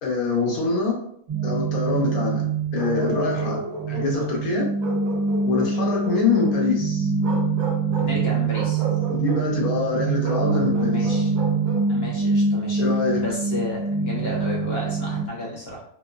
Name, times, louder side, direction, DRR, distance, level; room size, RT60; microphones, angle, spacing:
voice 1, 0.0-1.0 1.4-2.4 2.7-3.6 3.9-4.7 5.5-7.1 9.1-11.2 12.8-13.2, left 4 dB, 85° left, -2 dB, 1.2 m, -24 dB
sound 1, 1.3-15.2, right 4 dB, 40° right, 0.9 m, -24 dB
Bark, 2.8-4.4 4.8-6.5 7.2-8.2 8.5-9.5 10.2-11.9, right 2 dB, 75° right, 0.9 m, -33 dB
voice 2, 8.0-8.8 10.7-11.3 11.9-12.8 13.1-15.8, left 2 dB, 55° left, -4 dB, 0.9 m, -32 dB
2.9 x 2.0 x 2.3 m, 0.68 s
omnidirectional pair, 1.5 m